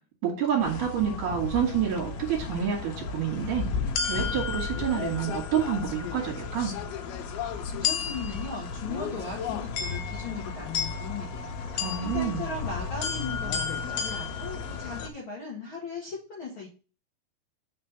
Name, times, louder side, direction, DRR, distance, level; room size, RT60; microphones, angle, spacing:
voice 1, 0.2-3.7 4.1-6.7 11.7-12.4, right 8 dB, 60° right, -4 dB, 3.0 m, -28 dB
sound 1, 0.6-15.1, left 5 dB, 85° left, 2.7 m, -33 dB
voice 2, 7.7-16.7, left 4 dB, 65° left, -4 dB, 1.2 m, -38 dB
6.2 x 3.3 x 5.7 m, 0.36 s
omnidirectional pair, 4.4 m